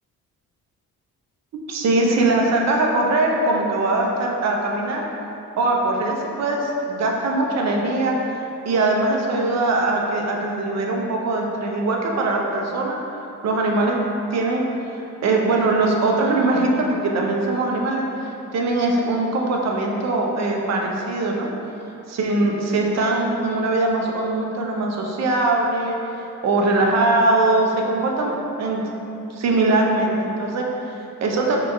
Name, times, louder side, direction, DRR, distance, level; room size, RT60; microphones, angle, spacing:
voice 1, 1.7-5.0 5.6-8.1 8.6-13.0 13.4-14.0 14.3-21.5 22.1-28.3 28.6-28.8 29.3-31.6, right 2 dB, 35° right, 0 dB, 0.5 m, -21 dB
4.5 x 2.2 x 2.2 m, 2.8 s
figure-of-eight pair, 40°, 46 cm